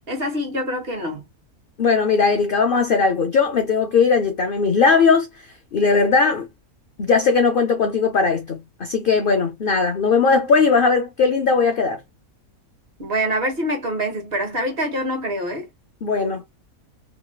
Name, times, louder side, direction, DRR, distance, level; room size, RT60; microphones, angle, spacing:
voice 1, 0.1-1.2 13.0-15.7, equal, 40° right, 1.3 m, -25 dB
voice 2, 1.8-6.5 7.0-12.0 16.0-16.5, left 5 dB, 75° left, 0.5 m, -19 dB
3.2 x 3.0 x 2.2 m
omnidirectional pair, 1.7 m